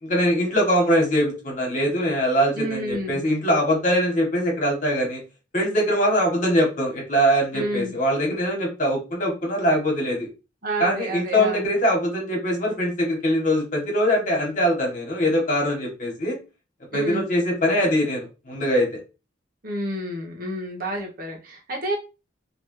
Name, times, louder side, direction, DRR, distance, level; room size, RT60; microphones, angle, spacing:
voice 1, 0.0-5.2 5.5-10.3 10.8-16.4 16.9-18.9, equal, 40° left, -1 dB, 1.5 m, -22 dB
voice 2, 2.5-3.2 7.5-7.9 10.6-11.7 16.9-17.2 19.6-22.0, right 1 dB, 45° right, 0 dB, 1.0 m, -29 dB
3.3 x 3.0 x 3.2 m, 0.29 s
head